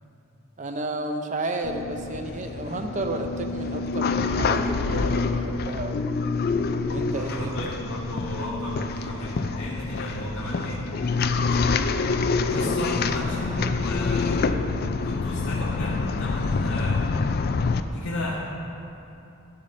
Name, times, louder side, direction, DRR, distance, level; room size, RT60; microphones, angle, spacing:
voice 1, 0.6-6.0 6.9-7.6 11.3-11.9, right 2 dB, 35° right, 5 dB, 0.6 m, -32 dB
sound 1, 1.6-17.8, left 4 dB, 50° left, 0.3 m, -26 dB
voice 2, 7.1-10.8 12.5-17.1 17.9-18.4, equal, 85° left, -9 dB, 1.5 m, -33 dB
12.0 x 4.2 x 6.6 m, 2.8 s
head